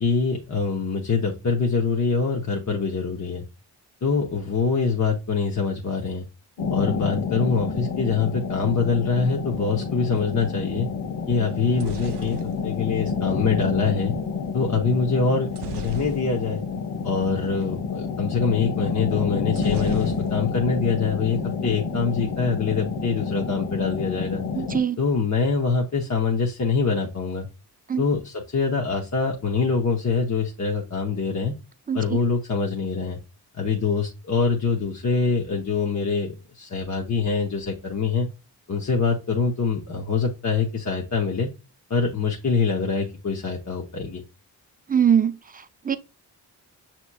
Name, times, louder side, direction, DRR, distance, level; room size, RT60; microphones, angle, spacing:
voice 1, 0.0-3.4 4.0-6.3 6.7-10.9 11.3-14.1 14.5-15.5 15.7-16.6 17.0-24.4 25.0-27.5 28.0-31.5 31.9-33.2 33.5-38.3 38.7-41.5 41.9-44.2, left 5 dB, 40° left, 0.9 m, -24 dB
sound 1, 6.6-24.8, left 5 dB, 80° left, 0.8 m, -29 dB
sound 2, 11.5-13.6 15.5-16.7 17.0-17.1 17.4-17.6 19.5-20.7 21.0-21.6, right 5 dB, 80° right, 0.6 m, -39 dB
voice 2, 24.6-25.0 27.9-28.0 31.9-32.0 44.9-46.0, right 8 dB, 20° right, 0.4 m, -22 dB
6.1 x 2.9 x 2.2 m
cardioid pair, 55°, 41 cm